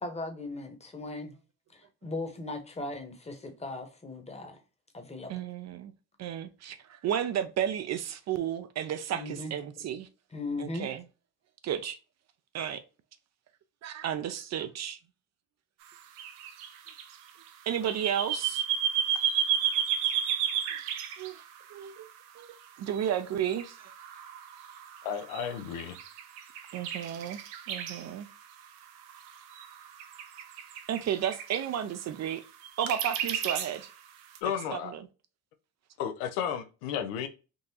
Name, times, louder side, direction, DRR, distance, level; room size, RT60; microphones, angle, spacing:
voice 1, 0.0-1.3 1.7-4.6 4.9-5.3 9.1-9.5 10.3-10.9, left 2 dB, 15° left, 0.9 m, -38 dB
voice 2, 5.3-5.9 6.2-10.1 10.6-11.0 11.6-12.0 12.5-12.8 13.8-15.0 17.7-18.6 21.2-21.4 21.7-22.1 22.4-23.9 26.7-27.4 27.7-28.3 30.9-32.4 32.8-33.9 34.7-35.0, right 9 dB, 45° right, 0.4 m, -33 dB
sound 1, 16.2-22.1 22.9-23.1 23.4-28.1 29.1-31.6 32.6-33.9 34.4-34.5, right 8 dB, 90° right, 0.6 m, -32 dB
voice 3, 25.0-26.0 34.4-34.9 36.0-37.3, left 8 dB, 90° left, 0.6 m, -33 dB
3.8 x 2.4 x 2.7 m
supercardioid pair, 85°, 40 cm